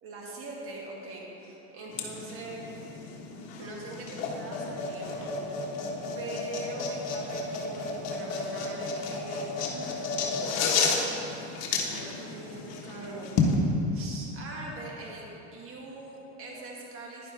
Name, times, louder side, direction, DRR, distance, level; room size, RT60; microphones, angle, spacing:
voice 1, 0.0-2.7 3.6-5.4 6.1-10.6 11.8-13.3 13.9-17.3, right 2 dB, 40° right, -3 dB, 2.1 m, -42 dB
sound 1, 1.9-13.5, left 4 dB, 50° left, 1.4 m, -32 dB
10.5 x 10.0 x 3.4 m, 3.0 s
supercardioid pair, 120°, 34 cm